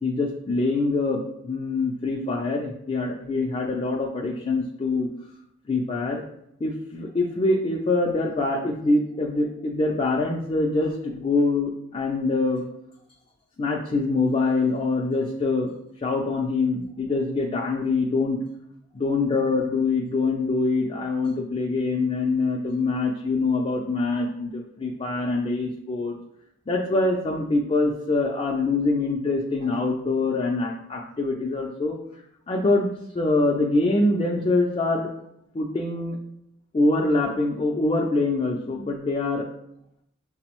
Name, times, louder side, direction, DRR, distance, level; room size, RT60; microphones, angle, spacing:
voice 1, 0.0-5.1 5.7-6.2 6.6-12.6 13.6-18.4 18.9-26.2 26.7-32.0 32.5-32.9 33.1-35.1 35.5-36.2 36.7-39.5, left 3 dB, 25° left, -1 dB, 0.3 m, -24 dB
5.7 x 2.0 x 2.9 m, 0.76 s
head